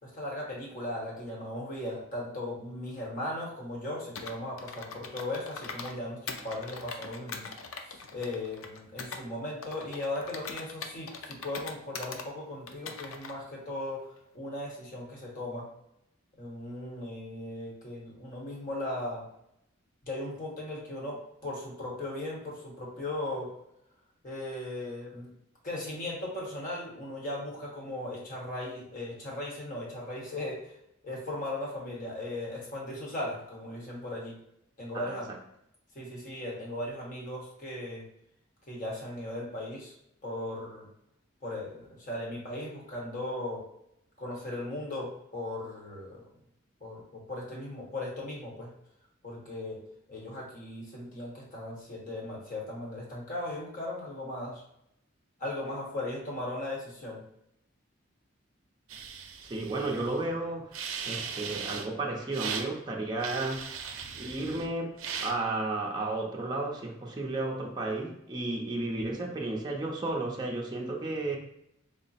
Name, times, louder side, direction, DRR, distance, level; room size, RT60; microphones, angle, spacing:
voice 1, 0.0-7.5 7.8-14.0 14.3-15.7 16.4-19.2 20.0-23.5 24.2-25.3 25.6-30.7 31.0-34.4 34.8-35.3 35.9-38.0 38.7-39.9 40.2-40.9 41.4-43.6 44.2-46.2 46.8-48.7 49.2-49.8 50.1-54.6 55.4-57.2, left 1 dB, 40° left, -4 dB, 1.2 m, -37 dB
Computer keyboard, 4.1-6.0 6.3-9.2 9.6-12.3 12.7-13.3, left 5 dB, 85° left, 0.5 m, -42 dB
voice 2, 34.9-35.4 59.4-60.7 61.1-63.7 64.2-71.4, right 2 dB, 20° right, -1 dB, 0.5 m, -33 dB
sound 1, 58.9-60.2 60.7-61.9 62.3-62.7 63.2-64.7 65.0-65.3, right 6 dB, 85° right, 0.5 m, -38 dB
3.6 x 2.0 x 4.1 m, 0.77 s
head